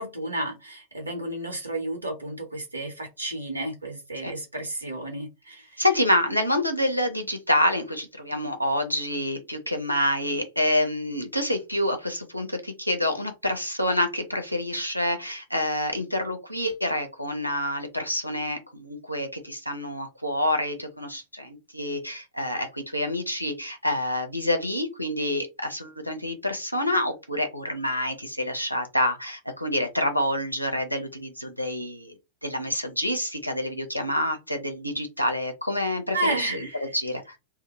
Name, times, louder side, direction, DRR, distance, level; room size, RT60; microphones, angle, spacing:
voice 1, 0.0-5.9 36.1-37.0, right 1 dB, 80° right, 0.9 m, -32 dB
voice 2, 5.8-32.2 32.4-37.4, left 1 dB, 90° left, 0.5 m, -27 dB
2.1 x 2.0 x 2.9 m
figure-of-eight pair, 90°, 0 cm